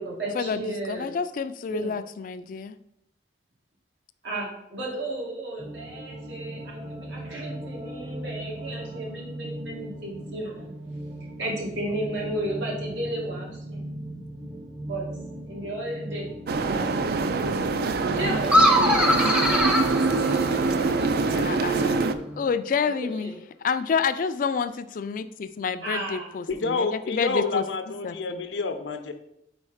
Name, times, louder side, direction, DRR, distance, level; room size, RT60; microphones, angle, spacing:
voice 1, 0.0-1.2 1.7-2.0 4.2-10.7 11.4-13.8 14.8-15.0 15.4-16.3 16.6-17.3 18.1-21.7 22.8-23.3 25.8-26.3, right 1 dB, 85° right, -4 dB, 2.0 m, -34 dB
voice 2, 0.9-2.7 21.4-22.0 22.4-23.4 23.6-27.6 28.0-28.4, left 6 dB, 45° left, 12 dB, 0.3 m, -28 dB
sound 1, 5.6-22.5, right 1 dB, 35° right, 0.8 m, -38 dB
sound 2, 16.5-22.1, right 4 dB, 55° right, 0.3 m, -24 dB
sound 3, 18.4-20.9, equal, 5° right, 0.6 m, -21 dB
voice 3, 26.5-29.1, left 4 dB, 90° left, 7 dB, 0.7 m, -28 dB
4.7 x 4.2 x 4.8 m, 0.79 s
head